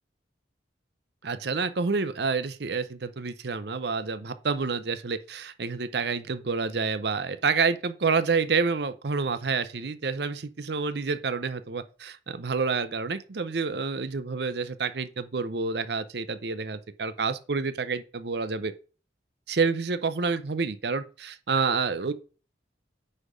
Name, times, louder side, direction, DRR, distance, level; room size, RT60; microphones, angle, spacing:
voice 1, 1.2-18.7 19.5-22.1, right 4 dB, 60° right, 0.6 m, -28 dB
9.8 x 4.3 x 5.0 m
head